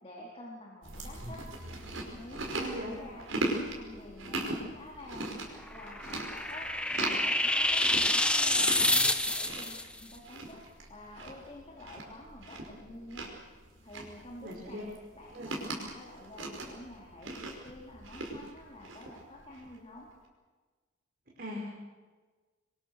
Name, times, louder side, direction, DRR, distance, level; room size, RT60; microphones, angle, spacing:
voice 1, 0.0-1.5 2.1-4.5 4.7-6.7 7.1-10.6 10.9-13.4 13.8-14.8 15.2-17.4 17.6-20.1, left 1 dB, 30° left, -2 dB, 3.8 m, -49 dB
Chewing mastication, 0.8-19.8, right 2 dB, 85° right, 5.4 m, -40 dB
voice 2, 2.5-2.9 14.4-14.8 15.3-15.6 21.4-21.6, equal, 50° right, -2 dB, 5.2 m, -39 dB
sound 1, 5.7-9.8, left 1 dB, 5° left, 1.2 m, -28 dB
26.5 x 23.5 x 6.7 m, 1.4 s
head